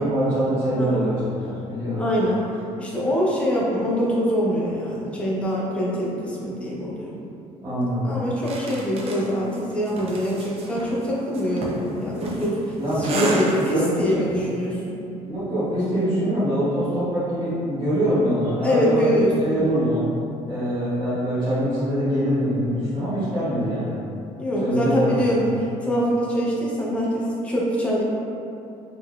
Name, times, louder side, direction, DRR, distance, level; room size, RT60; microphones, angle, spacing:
voice 1, 0.0-2.0 7.6-8.2 12.8-13.4 13.7-14.4 15.2-20.0 20.5-24.0 24.5-25.2, equal, 30° right, -15 dB, 1.4 m, -24 dB
voice 2, 2.0-2.5 2.8-7.2 8.0-15.0 18.6-19.9 24.4-25.4 25.8-28.0, equal, 10° left, -6 dB, 0.6 m, -24 dB
sound 1, 8.4-14.0, right 2 dB, 45° right, 0.5 m, -32 dB
4.1 x 3.2 x 2.2 m, 2.7 s
cardioid pair, 150°, 14 cm